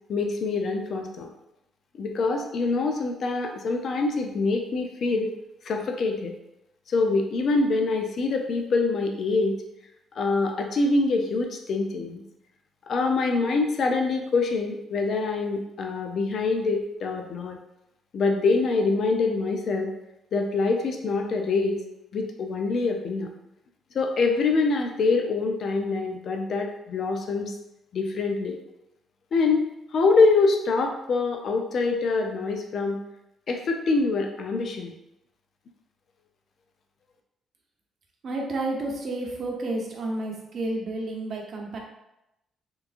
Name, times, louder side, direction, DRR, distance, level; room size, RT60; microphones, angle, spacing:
voice 1, 0.1-1.3 2.0-5.3 5.6-6.3 6.9-9.6 10.2-12.2 12.9-17.6 18.1-19.9 20.3-21.8 22.1-23.3 23.9-27.5 27.9-28.6 29.3-29.6 29.9-33.0 33.5-34.9, left 3 dB, 60° left, 3 dB, 0.5 m, -25 dB
voice 2, 38.2-41.8, right 2 dB, 55° right, 0 dB, 0.8 m, -31 dB
3.4 x 3.0 x 2.5 m, 0.88 s
cardioid pair, 90°, 0 cm